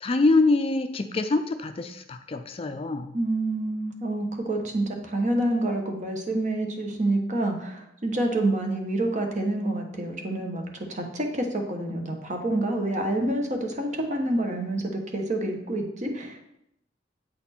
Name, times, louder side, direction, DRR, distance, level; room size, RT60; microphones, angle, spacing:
voice 1, 0.0-3.2, left 3 dB, 35° left, 8 dB, 0.4 m, -24 dB
voice 2, 3.1-10.6 10.9-16.4, right 1 dB, 45° right, 3 dB, 1.1 m, -27 dB
7.8 x 4.2 x 4.3 m, 0.78 s
head